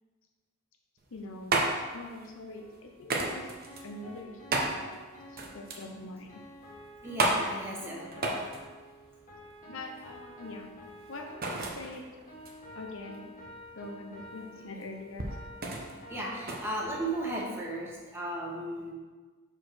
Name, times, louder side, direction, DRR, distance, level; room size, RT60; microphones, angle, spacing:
sound 1, 1.0-17.5, right 2 dB, 45° right, 0.9 m, -35 dB
voice 1, 1.1-1.6 1.9-3.5 3.8-4.4 5.3-6.4 8.1-8.3 9.7-10.7 11.1-12.0 12.7-13.3 13.7-15.4 16.3-16.4, left 2 dB, 65° left, 3 dB, 0.8 m, -43 dB
sound 2, 2.6-18.0, equal, 40° left, 1.7 m, -50 dB
voice 2, 7.0-8.1 16.1-18.9, right 1 dB, 10° right, -4 dB, 1.4 m, -35 dB
4.9 x 4.8 x 6.1 m, 1.4 s
head